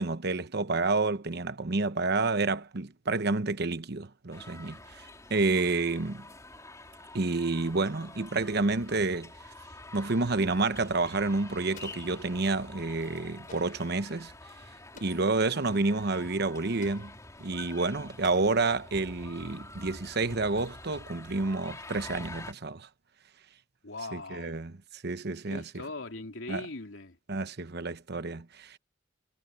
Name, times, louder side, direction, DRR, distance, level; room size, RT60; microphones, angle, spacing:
voice 1, 0.0-6.3 7.1-9.3 9.9-14.3 15.0-17.1 17.4-22.9 24.1-24.7 25.0-25.6 26.5-26.6 27.3-28.8, right 3 dB, 60° right, 1.0 m, -29 dB
sound 1, 4.3-22.5, left 2 dB, 15° left, 3.1 m, -47 dB
Explosion, 11.7-12.7 13.5-14.0 15.0-15.5 16.8-17.4 18.2-19.1, left 4 dB, 45° left, 4.7 m, -54 dB
voice 2, 23.8-24.6 25.5-27.2, left 2 dB, 85° left, 3.1 m, -40 dB
head